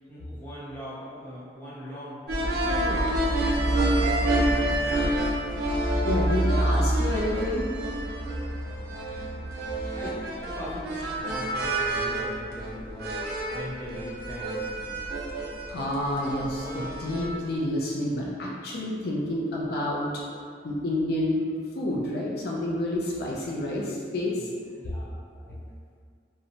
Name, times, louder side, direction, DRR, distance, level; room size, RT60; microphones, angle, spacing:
voice 1, 0.1-4.2 4.5-5.2 8.4-9.5 9.9-13.3 13.5-15.1 24.4-25.1 25.3-25.6, equal, 10° left, -9 dB, 0.6 m, -41 dB
sound 1, 2.3-17.4, right 1 dB, 60° right, 0.4 m, -28 dB
voice 2, 6.0-7.7 15.7-20.1 20.6-21.4 21.7-24.4, left 1 dB, 60° left, -4 dB, 0.4 m, -29 dB
2.6 x 2.1 x 2.8 m, 2.2 s
head